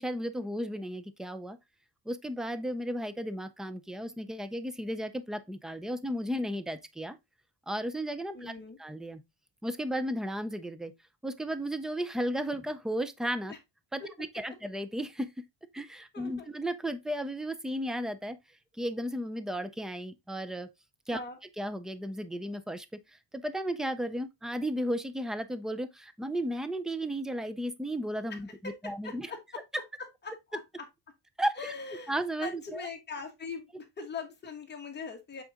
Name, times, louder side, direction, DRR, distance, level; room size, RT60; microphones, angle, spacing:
voice 1, 0.0-1.6 2.1-7.2 7.7-8.5 8.8-9.2 9.6-10.9 11.2-13.5 13.9-14.0 14.3-15.3 15.7-18.4 18.7-20.7 21.1-21.2 21.6-29.3 31.4-31.7 32.1-32.9, equal, ahead, 0.3 m, -34 dB
voice 2, 8.3-8.8 13.5-13.6 14.0-14.1 16.1-16.5 21.1-21.4 28.6-29.6 30.2-30.6 31.6-35.4, left 4 dB, 25° left, 1.3 m, -41 dB
7.8 x 3.8 x 3.4 m
cardioid pair, 175°, 41 cm